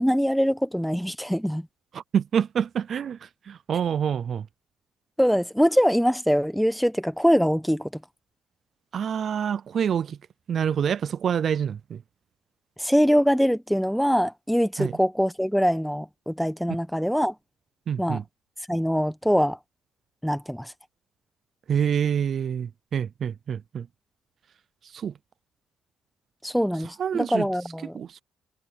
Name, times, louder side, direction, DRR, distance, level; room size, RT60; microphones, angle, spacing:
voice 1, 0.0-1.7 5.2-7.9 12.8-17.3 18.0-18.2 18.7-19.6 20.2-20.7 26.4-28.0, equal, ahead, 1.1 m, -23 dB
voice 2, 1.9-4.4 8.9-10.2 10.5-12.0 14.8-14.9 17.9-18.2 21.7-23.9 24.9-25.1 27.0-27.5 27.9-28.2, right 8 dB, 50° right, 0.4 m, -27 dB
cardioid pair, 110°, 0 cm